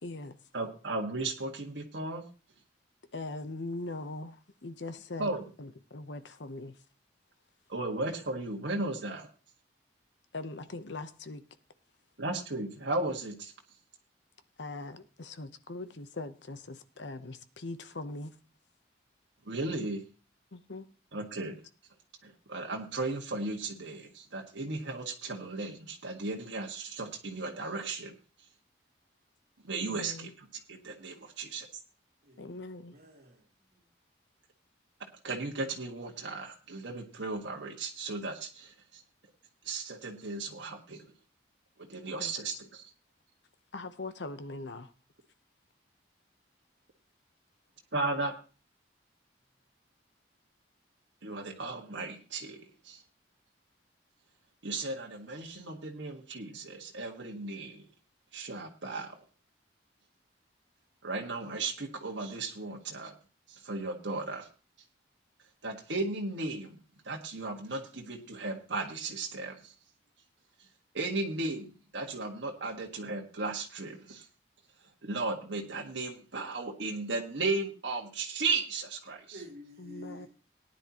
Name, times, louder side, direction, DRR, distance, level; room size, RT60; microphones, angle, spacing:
voice 1, 0.0-0.4 3.1-5.3 5.6-6.8 10.3-11.4 14.6-18.4 20.5-20.9 29.9-30.3 32.4-33.0 42.2-42.6 43.7-44.9 79.8-80.3, left 2 dB, 70° left, 0.9 m, -41 dB
voice 2, 0.5-2.2 5.2-5.4 7.7-9.3 12.2-13.5 19.4-20.0 21.1-21.6 22.2-28.1 29.6-31.6 35.2-39.0 39.6-41.1 41.8-42.9 47.9-48.3 51.2-53.0 54.6-57.8 58.3-59.2 61.0-63.2 63.5-64.5 65.6-69.7 70.9-74.3 75.0-79.4, right 3 dB, 70° right, 1.6 m, -35 dB
voice 3, 32.3-33.4 33.7-33.8 79.3-80.3, equal, 55° right, 2.9 m, -49 dB
18.0 x 10.0 x 2.9 m
head